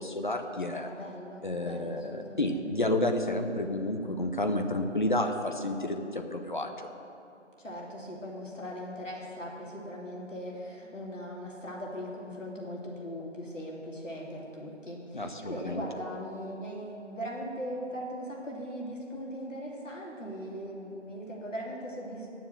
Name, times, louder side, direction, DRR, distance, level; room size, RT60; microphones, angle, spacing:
voice 1, 0.0-0.9 1.4-6.9 15.1-15.8, left 1 dB, 40° left, 5 dB, 0.9 m, -30 dB
voice 2, 0.7-2.9 7.6-22.3, equal, 85° left, -3 dB, 2.6 m, -39 dB
10.0 x 7.0 x 7.7 m, 2.8 s
figure-of-eight pair, 165°, 37 cm